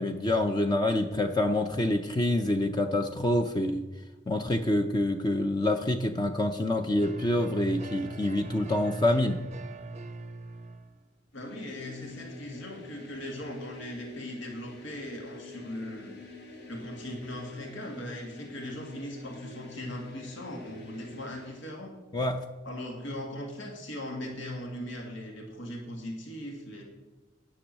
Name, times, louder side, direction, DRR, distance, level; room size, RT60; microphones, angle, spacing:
voice 1, 0.0-3.8 4.3-9.4 22.1-22.4, left 1 dB, 20° left, 6 dB, 0.5 m, -26 dB
sound 1, 7.0-10.9, right 3 dB, 35° right, 0.5 m, -40 dB
voice 2, 11.3-16.1 16.7-21.9 22.6-26.8, left 1 dB, 85° left, 1 dB, 2.0 m, -39 dB
sound 2, 11.3-21.7, left 2 dB, 55° left, 1.4 m, -47 dB
10.0 x 6.1 x 7.4 m, 1.1 s
head